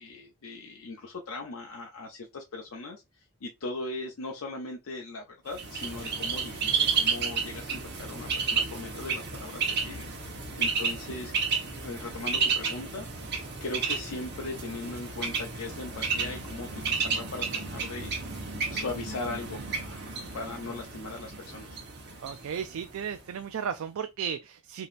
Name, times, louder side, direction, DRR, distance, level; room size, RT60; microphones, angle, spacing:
voice 1, 0.0-10.1 10.6-11.3 11.6-13.1 13.6-18.1 18.7-20.1 20.3-21.8, left 3 dB, 70° left, 0.5 m, -39 dB
Bird, 5.5-23.3, right 5 dB, 50° right, 1.1 m, -32 dB
voice 2, 22.2-24.9, right 7 dB, 70° right, 0.3 m, -34 dB
5.0 x 2.8 x 2.5 m
head